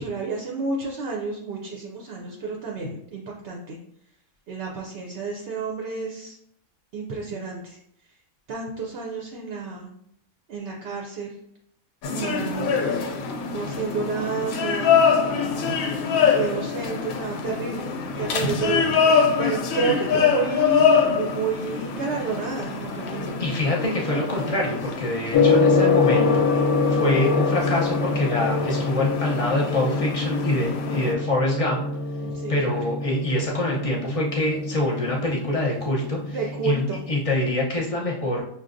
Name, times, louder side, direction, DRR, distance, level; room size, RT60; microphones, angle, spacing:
voice 1, 0.0-3.8 4.5-6.4 6.9-7.8 8.5-9.9 10.5-11.4 12.1-12.8 13.5-14.9 16.4-17.9 18.2-23.3 30.8-31.1 32.2-32.8 36.3-37.0, right 4 dB, 60° right, 0 dB, 0.6 m, -30 dB
sound 1, 12.0-31.1, left 6 dB, 90° left, 1.1 m, -25 dB
voice 2, 23.4-26.5 27.0-31.8 32.5-36.4 36.6-38.4, left 1 dB, 35° left, -3 dB, 0.7 m, -25 dB
Gong, 25.3-37.3, left 4 dB, 65° left, 0.8 m, -25 dB
5.7 x 2.3 x 2.5 m, 0.72 s
omnidirectional pair, 1.5 m